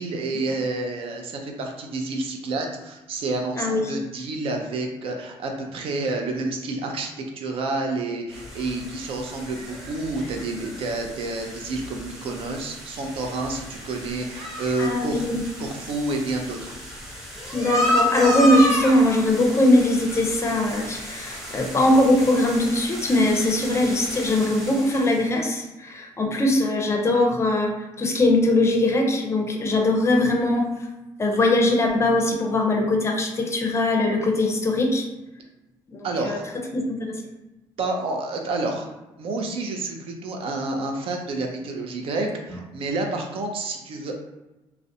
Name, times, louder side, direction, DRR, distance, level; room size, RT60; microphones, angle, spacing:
voice 1, 0.0-15.3 15.6-16.8 36.0-36.4 37.8-38.9 39.2-44.1, right 2 dB, 60° right, 2 dB, 0.5 m, -29 dB
sound 1, 8.3-25.3, left 1 dB, 5° right, 0.8 m, -32 dB
voice 2, 14.8-15.4 17.5-30.7 31.2-35.1 35.9-36.4 36.7-37.1, left 1 dB, 25° left, 1 dB, 0.5 m, -21 dB
2.4 x 2.1 x 2.7 m, 1.0 s
cardioid pair, 90°, 11 cm